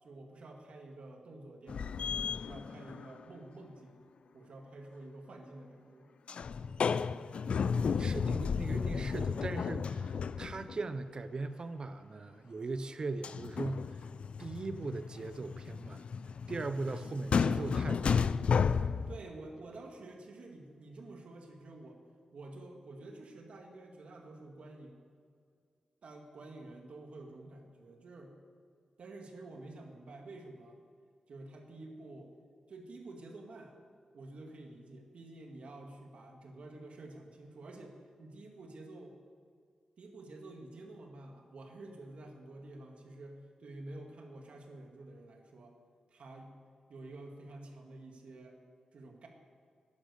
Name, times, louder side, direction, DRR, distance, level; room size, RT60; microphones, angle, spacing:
voice 1, 0.0-4.0 4.3-6.1 16.9-17.0 19.1-22.0 22.3-25.0 26.0-28.3 29.0-30.8 31.3-32.3 32.7-33.7 34.1-39.1 40.0-45.7 46.1-46.5 46.9-48.6 48.9-49.3, right 2 dB, 70° right, 2 dB, 1.9 m, -49 dB
sound 1, 1.7-3.2 6.3-10.9 13.2-19.2, left 6 dB, 65° left, 0.4 m, -33 dB
voice 2, 8.0-10.1 10.4-13.9 14.4-16.0 16.5-18.3, right 3 dB, 40° right, 11 dB, 0.6 m, -39 dB
12.0 x 10.5 x 6.7 m, 2.2 s
wide cardioid pair, 130°, 2 cm